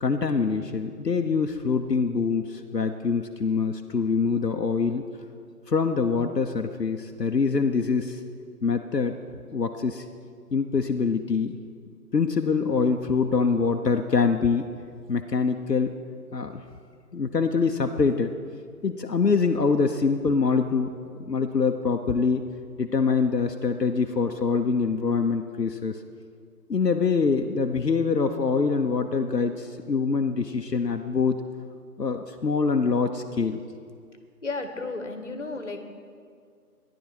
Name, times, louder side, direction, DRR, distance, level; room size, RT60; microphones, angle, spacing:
voice 1, 0.0-5.0 5.7-8.2 8.6-9.2 9.5-10.1 10.5-11.6 12.1-14.7 15.1-15.9 16.3-16.6 17.1-18.3 18.8-22.4 22.8-26.0 26.7-31.4 32.0-33.6, left 5 dB, 80° left, 5 dB, 0.9 m, -24 dB
voice 2, 34.4-35.8, left 3 dB, 50° left, 7 dB, 1.4 m, -33 dB
14.5 x 10.5 x 4.6 m, 2.1 s
figure-of-eight pair, 155°, 48 cm